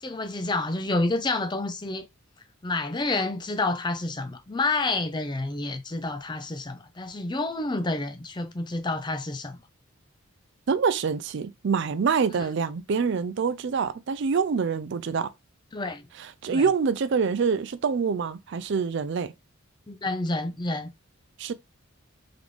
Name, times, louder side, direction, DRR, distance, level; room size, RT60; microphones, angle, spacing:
voice 1, 0.0-2.1 2.6-9.6 12.3-12.5 15.7-16.1 16.5-16.6 19.9-20.9, left 2 dB, 20° left, 0.5 m, -29 dB
voice 2, 10.7-15.3 16.4-19.3 21.4-21.5, right 5 dB, 55° right, 0.4 m, -25 dB
3.8 x 3.5 x 3.2 m
head